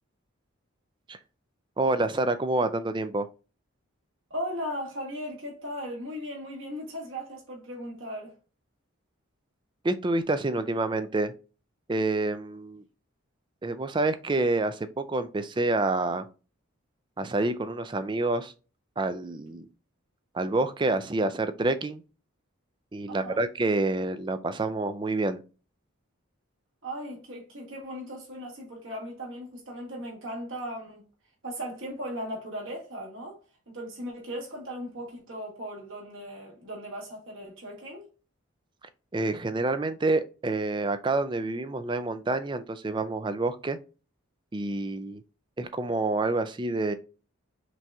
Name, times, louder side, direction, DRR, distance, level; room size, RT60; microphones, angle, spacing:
voice 1, 1.8-3.3 9.8-11.3 11.9-12.8 13.6-16.3 17.2-18.5 19.0-19.7 20.3-22.0 22.9-25.4 39.1-43.8 44.5-45.2 45.6-46.9, right 2 dB, 20° right, 0.3 m, -28 dB
voice 2, 4.3-8.3 23.1-23.4 26.8-31.0 31.4-33.4 33.7-38.1, equal, 65° right, 1.9 m, -37 dB
5.9 x 2.8 x 2.3 m
head